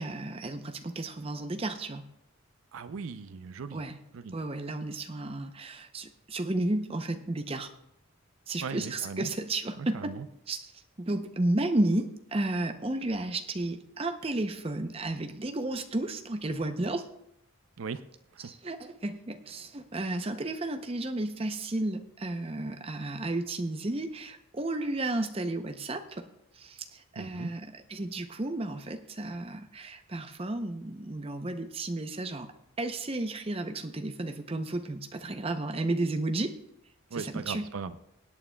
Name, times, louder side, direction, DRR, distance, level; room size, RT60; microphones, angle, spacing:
voice 1, 0.0-2.0 3.7-4.0 4.3-7.7 8.5-10.1 10.5-10.7 11.0-17.1 18.4-26.2 26.5-32.5 32.8-36.6 37.1-37.7, right 2 dB, 25° right, 6 dB, 0.6 m, -32 dB
voice 2, 2.7-3.8 4.1-4.4 8.6-9.3 9.8-10.3 17.8-18.0 18.4-18.5 27.2-27.5 37.1-38.0, right 5 dB, 75° right, 12 dB, 0.5 m, -38 dB
24.5 x 8.7 x 2.2 m, 0.80 s
head